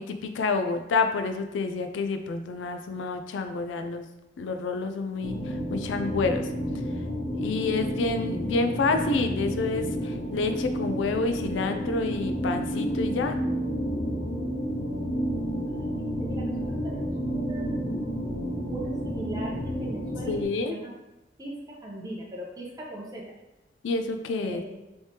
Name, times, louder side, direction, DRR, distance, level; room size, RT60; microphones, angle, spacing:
voice 1, 0.0-4.1 4.4-6.5 7.3-13.4 20.3-20.8 23.8-24.6, left 3 dB, 75° left, 7 dB, 0.4 m, -28 dB
sound 1, 5.2-20.4, equal, 55° left, 1.3 m, -30 dB
voice 2, 15.6-18.0 18.7-20.9 21.4-23.2 24.4-24.7, right 1 dB, 20° right, -3 dB, 0.7 m, -39 dB
3.2 x 3.1 x 2.8 m, 0.94 s
head